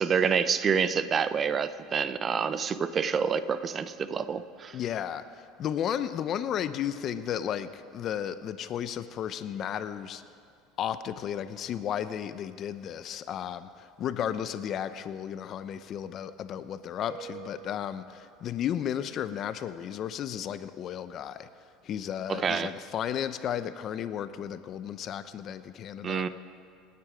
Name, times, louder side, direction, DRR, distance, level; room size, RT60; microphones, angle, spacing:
voice 1, 0.0-4.8 22.3-22.7 26.0-26.3, right 6 dB, 30° right, 13 dB, 0.7 m, -27 dB
voice 2, 4.7-10.2 10.8-21.5 21.8-26.3, left 9 dB, 45° left, 12 dB, 0.7 m, -34 dB
sound 1, 17.1-19.2, right 5 dB, 65° right, 3.6 m, -48 dB
26.0 x 9.6 x 5.1 m, 2.4 s
supercardioid pair, 125°, 0 cm